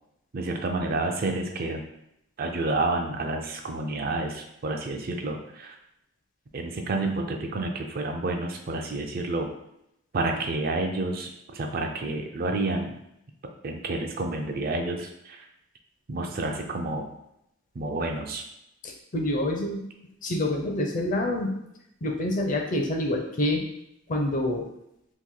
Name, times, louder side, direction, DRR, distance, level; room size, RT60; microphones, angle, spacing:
voice 1, 0.3-1.8 2.4-5.7 6.5-9.5 10.1-13.0 13.6-15.5 16.1-17.1 17.8-18.4, right 2 dB, 45° right, 4 dB, 0.4 m, -29 dB
voice 2, 18.8-19.8 20.2-21.5 22.0-23.6 24.1-24.7, left 1 dB, 40° left, 2 dB, 0.5 m, -27 dB
3.0 x 2.5 x 3.7 m, 0.80 s
head